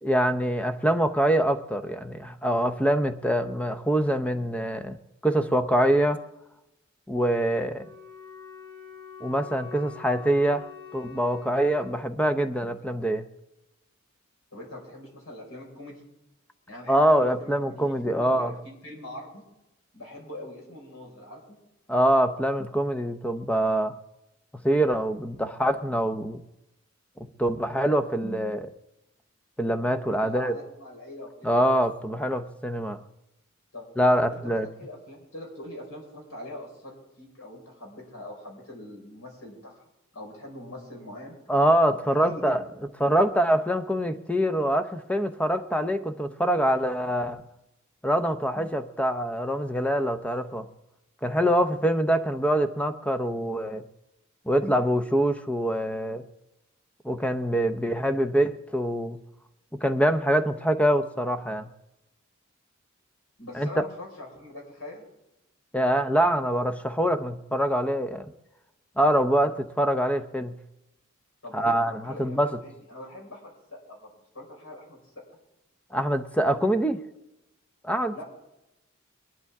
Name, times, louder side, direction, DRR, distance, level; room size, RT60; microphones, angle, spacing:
voice 1, 0.0-5.0 5.2-6.2 7.1-7.9 9.2-13.2 16.9-18.5 21.9-24.0 24.6-26.4 27.4-28.7 29.6-30.6 31.4-33.0 34.0-34.7 41.5-42.6 43.0-47.4 48.0-50.7 51.2-53.8 54.5-56.2 57.0-59.2 59.8-61.7 63.5-63.8 65.7-68.3 69.0-70.6 71.5-72.6 75.9-77.0 77.8-78.2, right 1 dB, 5° left, 9 dB, 0.6 m, -24 dB
Wind instrument woodwind instrument, 7.6-12.0, left 8 dB, 25° left, 1.8 m, -45 dB
voice 2, 14.5-16.0 16.7-19.4 19.9-21.6 30.2-31.5 33.7-33.9 34.3-39.8 40.1-41.4 42.0-42.6 63.4-65.0 71.4-75.2 78.1-78.2, left 1 dB, 85° left, -1 dB, 4.9 m, -43 dB
21.5 x 11.0 x 3.5 m, 0.92 s
head